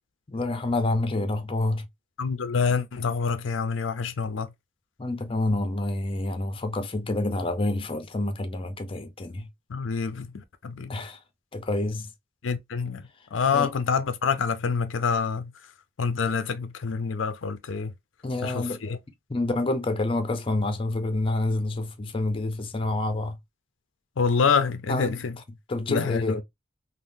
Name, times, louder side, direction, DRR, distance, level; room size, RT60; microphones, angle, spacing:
voice 1, 0.3-1.9 5.0-9.5 10.9-11.2 11.5-12.1 13.5-13.7 18.2-18.8 19.3-23.4 24.9-25.2 25.7-26.4, left 2 dB, 30° left, 0.6 m, -28 dB
voice 2, 2.2-4.5 9.7-10.3 10.6-10.9 12.4-13.0 13.3-15.5 16.0-17.9 18.4-19.0 24.2-25.4 25.9-26.4, left 5 dB, 90° left, 0.5 m, -26 dB
3.5 x 2.1 x 2.6 m
head